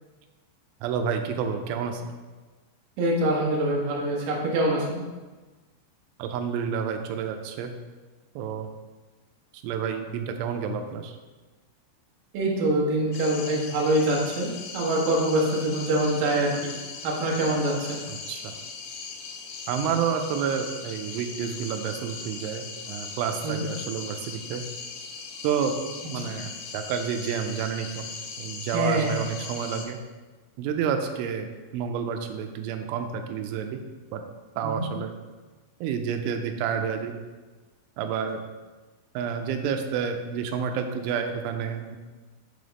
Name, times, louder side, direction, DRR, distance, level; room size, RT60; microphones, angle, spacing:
voice 1, 0.8-2.1 6.2-7.7 8.4-8.7 9.5-11.2 18.1-18.5 19.7-24.6 25.4-25.8 26.1-28.1 28.4-30.0 30.6-31.5 31.7-33.8 34.1-34.2 34.6-35.1 35.8-37.1 38.0-38.4 39.2-42.0, right 7 dB, 85° right, 6 dB, 3.0 m, -29 dB
voice 2, 3.0-5.0 12.3-16.7 17.0-18.0 23.4-23.6 28.7-29.2 34.6-34.9, right 1 dB, 70° right, -3 dB, 2.2 m, -25 dB
sound 1, 13.1-29.9, left 5 dB, 85° left, 3.1 m, -39 dB
7.0 x 5.1 x 4.0 m, 1.3 s
omnidirectional pair, 5.6 m